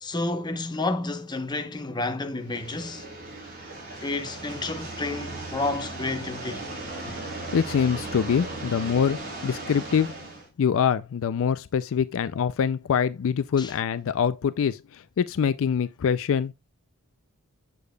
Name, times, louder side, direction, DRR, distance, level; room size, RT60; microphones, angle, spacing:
voice 1, 0.0-3.1 4.0-6.6 13.6-13.7, left 2 dB, 20° left, 0.8 m, -30 dB
sound 1, 2.4-10.5, right 2 dB, 40° right, 3.5 m, -37 dB
voice 2, 7.5-10.1 10.6-16.5, left 7 dB, 60° left, 0.4 m, -24 dB
8.4 x 6.7 x 2.2 m
head